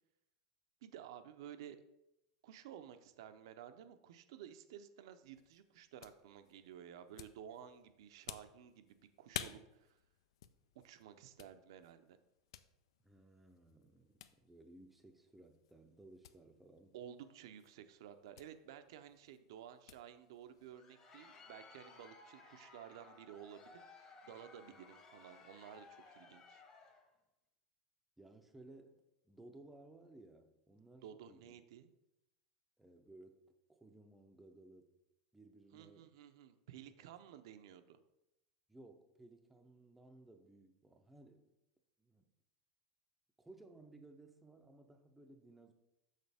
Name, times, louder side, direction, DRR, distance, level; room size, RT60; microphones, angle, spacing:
voice 1, 0.8-1.8 2.4-10.0 10.8-12.2 16.9-26.6 31.0-31.9 35.7-38.0, right 9 dB, 70° right, 10 dB, 0.6 m, -54 dB
sound 1, 5.2-20.8, left 10 dB, 90° left, 0.4 m, -55 dB
voice 2, 13.0-17.0 28.2-31.5 32.8-35.0 35.3-36.1 37.0-37.1 38.7-41.5 42.0-42.3 43.4-45.7, right 2 dB, 5° right, 4 dB, 0.5 m, -60 dB
Crowd, 20.6-27.1, left 4 dB, 25° left, 1.0 m, -59 dB
6.6 x 6.5 x 3.5 m, 0.88 s
supercardioid pair, 155°, 3 cm